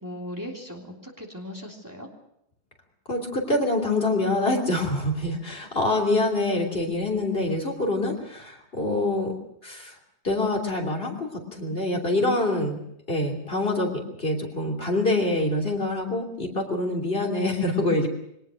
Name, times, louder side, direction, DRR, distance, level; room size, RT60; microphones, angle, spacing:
voice 1, 0.0-2.1, equal, 15° right, 0 dB, 3.2 m, -38 dB
voice 2, 3.1-9.3 9.6-9.9 10.2-18.1, left 2 dB, 60° left, 1 dB, 3.4 m, -25 dB
23.5 x 18.5 x 6.4 m, 0.79 s
omnidirectional pair, 1.1 m